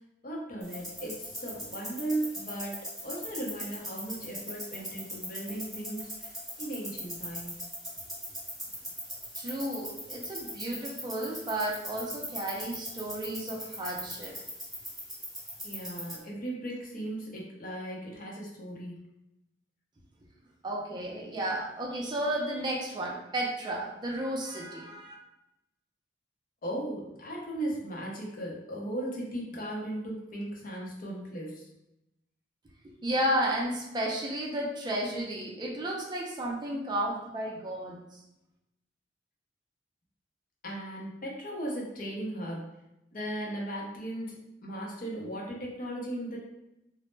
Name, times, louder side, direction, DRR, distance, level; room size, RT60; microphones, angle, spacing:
voice 1, 0.2-7.5 15.6-19.0 26.6-31.7 40.6-42.8 43.1-44.4 44.6-46.4, right 1 dB, 50° left, -2 dB, 0.6 m, -37 dB
sound 1, 0.6-16.2, equal, ahead, 0.7 m, -41 dB
voice 2, 9.4-14.4 20.6-25.1 32.8-38.2, right 1 dB, 25° right, -2 dB, 0.4 m, -33 dB
2.0 x 2.0 x 3.1 m, 0.87 s
head